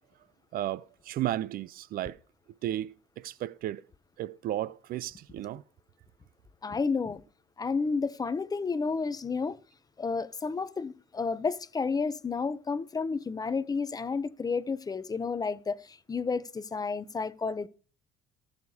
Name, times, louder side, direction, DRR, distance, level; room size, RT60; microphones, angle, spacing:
voice 1, 0.5-2.2 2.6-3.8 4.2-5.6, right 13 dB, 60° right, 0.4 m, -34 dB
voice 2, 6.6-7.2 7.6-9.6 10.0-17.7, left 4 dB, 20° left, 0.5 m, -31 dB
18.5 x 6.6 x 2.7 m
cardioid pair, 110°, 17 cm